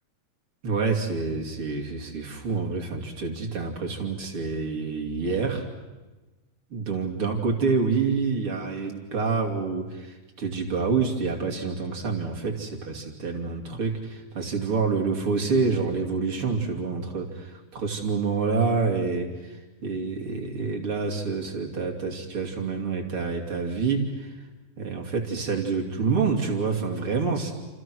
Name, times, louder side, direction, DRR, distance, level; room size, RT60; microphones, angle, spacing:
voice 1, 0.6-5.7 6.7-24.4 24.8-27.5, right 4 dB, 40° right, 1 dB, 3.4 m, -27 dB
29.0 x 28.0 x 6.3 m, 1.2 s
omnidirectional pair, 4.1 m